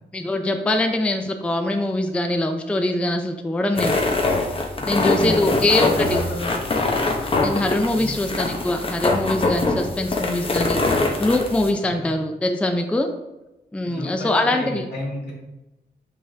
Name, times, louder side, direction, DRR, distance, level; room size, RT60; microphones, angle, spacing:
voice 1, 0.1-4.0 4.9-6.2 7.4-10.8 11.2-13.1 13.7-14.9, left 1 dB, 5° left, 5 dB, 0.4 m, -23 dB
sound 1, 3.7-11.7, left 2 dB, 30° left, 0.8 m, -23 dB
voice 2, 4.8-6.5 7.9-8.2 12.0-12.1 13.8-15.3, left 1 dB, 75° left, -3 dB, 2.0 m, -32 dB
6.4 x 5.5 x 3.3 m, 1.0 s
wide cardioid pair, 165°, 18 cm